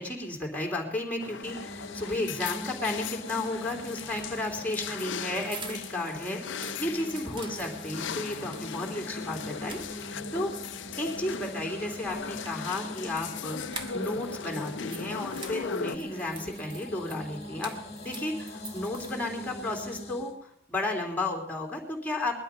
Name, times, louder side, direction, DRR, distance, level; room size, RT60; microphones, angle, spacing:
voice 1, 0.0-10.5 11.0-17.8 18.0-22.4, left 2 dB, 10° left, -1 dB, 3.3 m, -33 dB
sound 1, 1.2-16.0, left 6 dB, 75° left, 0.5 m, -39 dB
sound 2, 1.4-20.3, left 1 dB, 35° left, 1.9 m, -42 dB
sound 3, 4.0-6.1 6.4-8.7 9.1-9.2 9.6-10.4 12.0-14.3 14.6-19.5, right 3 dB, 25° right, 1.5 m, -46 dB
21.0 x 12.0 x 5.6 m, 0.71 s
head